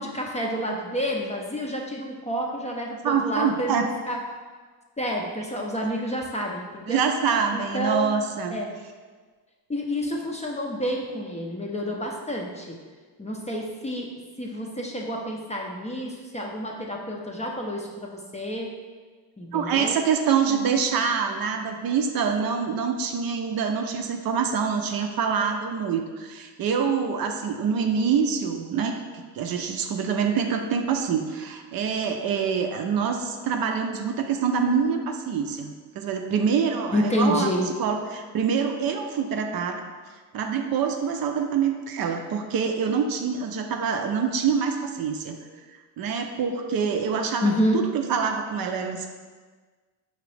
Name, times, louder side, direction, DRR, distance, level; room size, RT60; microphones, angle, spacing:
voice 1, 0.0-4.2 5.0-7.0 7.5-8.1 8.5-8.7 9.7-12.8 13.2-14.1 14.4-18.7 19.4-20.0 20.4-20.6 36.9-37.7 47.4-47.8, equal, 15° left, -1 dB, 0.5 m, -29 dB
voice 2, 3.0-3.9 6.9-8.6 19.5-29.0 29.3-37.5 37.8-39.8 40.3-45.4 46.0-49.1, right 6 dB, 50° right, 4 dB, 0.5 m, -25 dB
5.0 x 2.9 x 3.2 m, 1.5 s
supercardioid pair, 80°, 46 cm